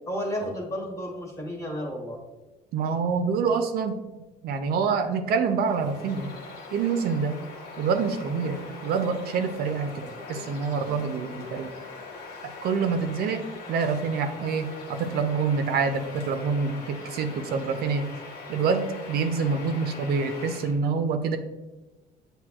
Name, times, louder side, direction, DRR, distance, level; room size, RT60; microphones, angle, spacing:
voice 1, 0.1-2.2, equal, 15° left, -1 dB, 1.2 m, -32 dB
voice 2, 2.7-4.0 4.4-6.3 6.7-7.4 7.8-10.0 10.3-11.7 12.6-18.1 18.5-21.4, right 5 dB, 70° right, 7 dB, 0.4 m, -26 dB
Bird vocalization bird call bird song, 5.5-20.8, left 3 dB, 85° left, 1.0 m, -42 dB
7.3 x 2.7 x 2.3 m, 1.1 s
cardioid pair, 110°, 17 cm